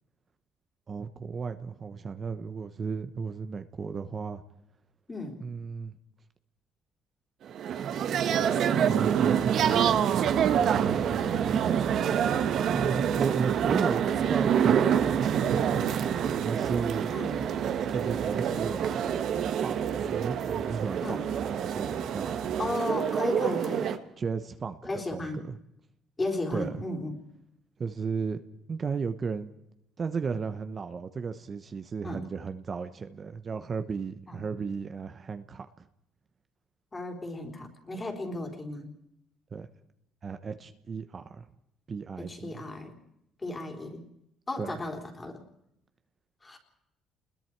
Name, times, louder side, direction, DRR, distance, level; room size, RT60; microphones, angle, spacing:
voice 1, 0.9-4.4 5.4-6.0 8.1-8.5 8.9-10.0 10.8-11.2 12.7-15.0 15.4-17.1 17.9-19.0 19.6-21.2 21.6-22.4 24.2-24.8 25.1-25.6 26.5-26.7 27.8-28.4 28.7-29.5 30.0-35.9 39.5-39.7 40.2-41.5 41.9-42.6 44.6-44.8, right 5 dB, 40° right, 9 dB, 1.0 m, -34 dB
voice 2, 5.1-5.4 17.1-17.4 21.0-21.2 22.6-23.9 24.8-25.4 26.2-27.2 32.0-32.2 34.3-34.4 36.9-38.9 42.2-42.9 43.4-44.0 44.5-45.4 46.4-46.6, left 2 dB, 25° left, 3 dB, 3.8 m, -34 dB
sound 1, 7.5-24.0, right 8 dB, 65° right, 1.3 m, -27 dB
sound 2, 8.9-23.1, right 7 dB, 90° right, 2.8 m, -43 dB
28.5 x 21.0 x 4.7 m, 0.81 s
cardioid pair, 95°, 0 cm